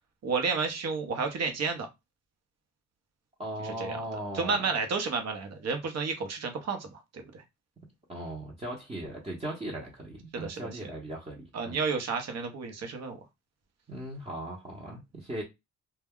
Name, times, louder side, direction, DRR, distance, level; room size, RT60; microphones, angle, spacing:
voice 1, 0.2-1.9 3.6-4.0 4.3-7.4 10.3-10.8 11.5-13.2, right 4 dB, 60° right, 0.9 m, -31 dB
voice 2, 3.4-4.6 8.1-11.8 13.9-15.4, right 1 dB, 20° right, 0.9 m, -38 dB
2.2 x 2.1 x 3.5 m
cardioid pair, 90°, 30 cm